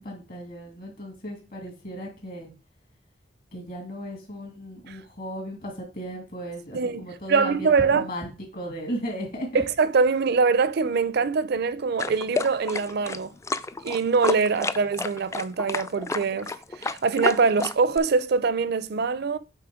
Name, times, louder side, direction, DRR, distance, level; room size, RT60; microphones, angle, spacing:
voice 1, 0.0-2.5 3.5-9.6, equal, 55° left, 2.8 m, -36 dB
voice 2, 7.3-8.1 9.5-13.3 13.8-16.5 16.8-19.4, right 4 dB, 60° right, 0.5 m, -23 dB
sound 1, 12.0-18.0, left 3 dB, 15° left, 0.3 m, -30 dB
8.5 x 3.3 x 4.9 m
head